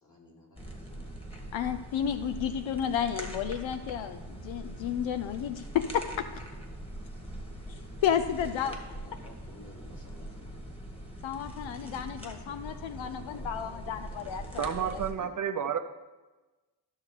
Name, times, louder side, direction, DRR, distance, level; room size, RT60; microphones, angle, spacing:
voice 1, 0.0-1.3 2.1-2.5 8.4-10.6 12.5-12.6 12.9-15.3, left 2 dB, 40° left, -3 dB, 3.1 m, -53 dB
sound 1, 0.6-15.1, right 1 dB, 10° left, 1.7 m, -42 dB
voice 2, 1.5-6.3 8.0-8.8 11.2-14.7, left 9 dB, 85° left, 9 dB, 0.6 m, -32 dB
voice 3, 14.6-15.8, right 8 dB, 45° right, 7 dB, 0.6 m, -30 dB
14.0 x 6.3 x 3.3 m, 1.2 s
cardioid pair, 70°, 45 cm